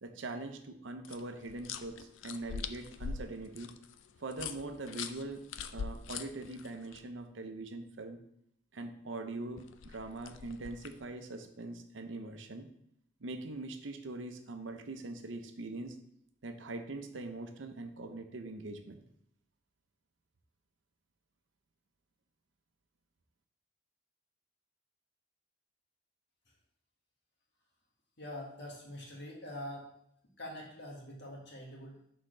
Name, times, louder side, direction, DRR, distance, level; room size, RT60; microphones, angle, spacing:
voice 1, 0.0-3.7 4.2-5.4 5.7-8.2 8.7-12.7 13.2-16.0 16.4-19.0, right 2 dB, 90° right, 6 dB, 0.7 m, -42 dB
sound 1, 1.0-7.0 9.6-11.0, left 6 dB, 80° left, 0.4 m, -43 dB
voice 2, 28.2-29.9 30.4-32.1, left 1 dB, 65° left, -2 dB, 1.7 m, -44 dB
6.4 x 4.4 x 3.8 m, 0.73 s
head